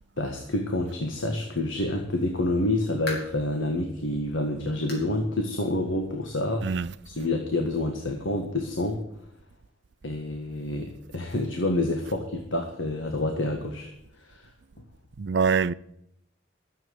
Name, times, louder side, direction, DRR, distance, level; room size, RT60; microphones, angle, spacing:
voice 1, 0.2-6.8 7.0-9.0 10.0-13.9 14.2-14.5, left 1 dB, 80° left, 1.6 m, -28 dB
sound 1, 2.7-3.5 4.0-4.1 4.9-5.2 5.5-5.6 6.1-6.2 7.3-7.4, left 2 dB, 55° left, 4.6 m, -39 dB
voice 2, 15.2-15.7, right 5 dB, 60° right, 0.4 m, -24 dB
12.5 x 7.7 x 7.8 m
head